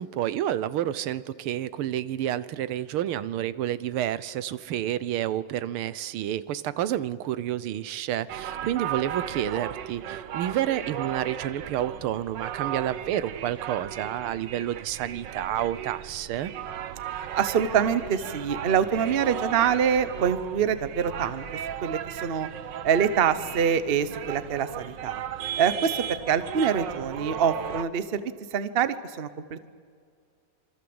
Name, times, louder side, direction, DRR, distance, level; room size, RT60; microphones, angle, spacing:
voice 1, 0.0-16.5, right 11 dB, 90° right, 16 dB, 1.7 m, -29 dB
sound 1, 8.3-27.8, right 10 dB, 65° right, 1.5 m, -36 dB
voice 2, 17.3-21.4 21.8-22.5 22.8-25.2 25.6-29.7, right 7 dB, 40° right, 13 dB, 0.9 m, -25 dB
26.5 x 24.5 x 7.9 m, 2.2 s
omnidirectional pair, 2.3 m